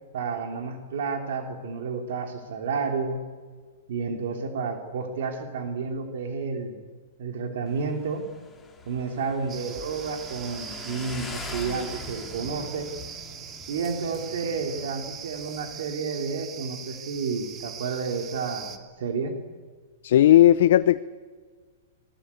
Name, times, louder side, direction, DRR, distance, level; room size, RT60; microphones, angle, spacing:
voice 1, 0.1-3.2 3.9-6.8 7.2-8.3 8.8-12.9 13.7-19.4, right 5 dB, 65° right, 5 dB, 3.1 m, -31 dB
Motorcycle, 7.7-15.9, left 3 dB, 10° left, 2.6 m, -43 dB
sound 1, 9.5-18.8, right 8 dB, 20° right, 1.8 m, -41 dB
voice 2, 20.0-21.0, left 12 dB, 60° left, 13 dB, 0.7 m, -16 dB
26.0 x 19.0 x 8.4 m, 1.5 s
hypercardioid pair, 155°, 0 cm